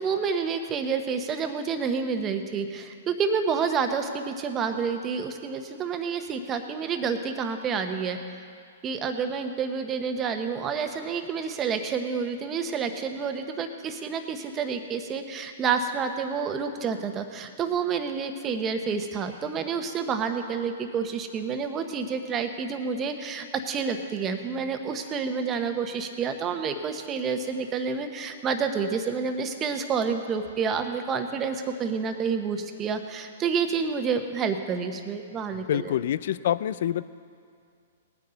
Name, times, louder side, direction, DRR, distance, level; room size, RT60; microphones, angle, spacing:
voice 1, 0.0-8.4 8.8-36.0, right 5 dB, 25° right, 7 dB, 1.1 m, -29 dB
voice 2, 35.7-37.0, left 10 dB, 60° left, 16 dB, 0.4 m, -26 dB
19.0 x 9.5 x 4.0 m, 2.3 s
hypercardioid pair, 120°, 0 cm